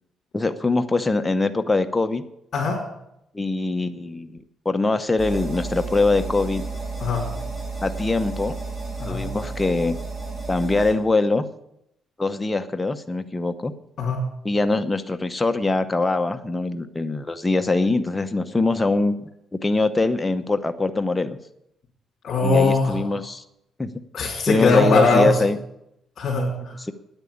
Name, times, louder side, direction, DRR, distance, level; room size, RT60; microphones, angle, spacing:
voice 1, 0.3-2.2 3.3-4.4 4.6-6.6 7.8-8.6 9.0-10.0 10.5-11.5 12.2-13.7 14.4-19.2 19.6-21.4 22.4-23.4 23.8-23.9 24.4-25.6 26.8-26.9, left 3 dB, 15° left, 8 dB, 0.8 m, -23 dB
voice 2, 2.5-2.8 7.0-7.2 9.0-9.2 14.0-14.2 22.2-23.0 24.1-25.4 26.2-26.7, left 3 dB, 55° left, -4 dB, 3.3 m, -21 dB
sound 1, 5.2-10.9, right 3 dB, 30° right, 4.7 m, -32 dB
9.8 x 9.0 x 8.5 m, 0.79 s
cardioid pair, 90°, 0 cm